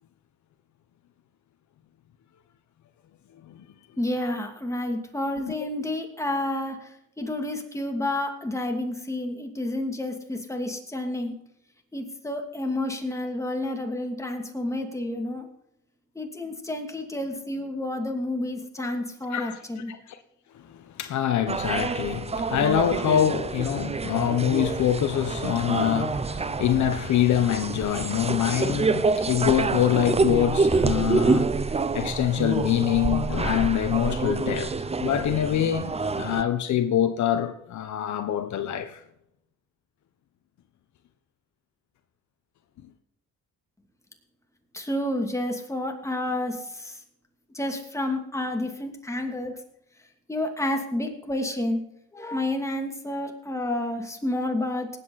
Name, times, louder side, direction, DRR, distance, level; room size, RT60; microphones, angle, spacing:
voice 1, 4.0-11.4 11.9-15.4 16.1-19.9 44.7-47.0 47.5-49.6 50.3-51.8 52.1-54.9, left 1 dB, 10° left, 2.7 m, -30 dB
voice 2, 21.0-31.6 31.9-39.0, left 10 dB, 70° left, 1.1 m, -25 dB
sound 1, 21.5-36.4, right 4 dB, 20° right, 0.7 m, -27 dB
19.0 x 8.5 x 4.2 m
cardioid pair, 90°, 30 cm